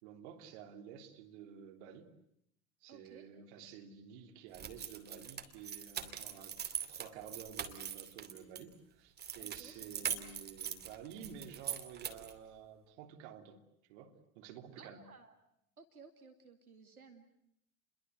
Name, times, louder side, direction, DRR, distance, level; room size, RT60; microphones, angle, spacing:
voice 1, 0.0-2.1 2.8-6.6 6.9-13.6 13.9-15.1, right 8 dB, 50° right, 3.3 m, -51 dB
voice 2, 2.9-3.4 9.4-10.2 14.8-15.3 15.8-17.4, right 5 dB, 85° right, 2.5 m, -58 dB
sound 1, 4.5-8.6 9.2-12.4, right 8 dB, 25° right, 2.6 m, -42 dB
30.0 x 22.5 x 8.1 m
figure-of-eight pair, 85°, 42 cm